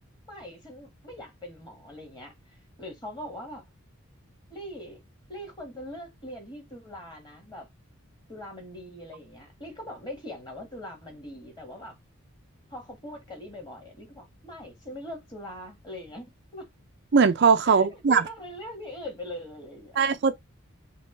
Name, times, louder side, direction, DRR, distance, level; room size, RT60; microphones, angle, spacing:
voice 1, 0.3-3.6 4.5-5.0 5.3-7.7 8.3-12.0 12.7-16.7 17.6-20.0, left 1 dB, 20° left, 1.7 m, -41 dB
voice 2, 17.1-18.2 20.0-20.3, right 5 dB, 50° right, 0.4 m, -20 dB
5.3 x 2.3 x 3.8 m
head